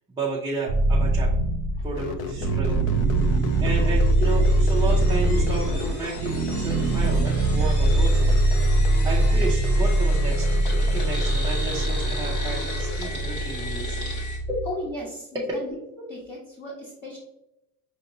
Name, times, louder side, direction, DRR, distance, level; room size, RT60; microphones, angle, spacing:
voice 1, 0.1-1.3 1.8-2.8 3.6-4.4 4.7-8.4 9.0-10.5 10.8-14.0 14.5-14.6 15.3-15.5, right 3 dB, 10° right, -6 dB, 0.4 m, -32 dB
sound 1, 0.7-14.7, right 2 dB, 55° right, 0.7 m, -22 dB
sound 2, 1.9-13.1, left 5 dB, 75° left, 0.6 m, -35 dB
sound 3, 3.2-14.4, left 1 dB, 45° left, 1.5 m, -38 dB
voice 2, 14.7-17.2, equal, 25° left, -5 dB, 1.0 m, -35 dB
5.9 x 2.7 x 2.6 m, 0.84 s
cardioid pair, 165°, 39 cm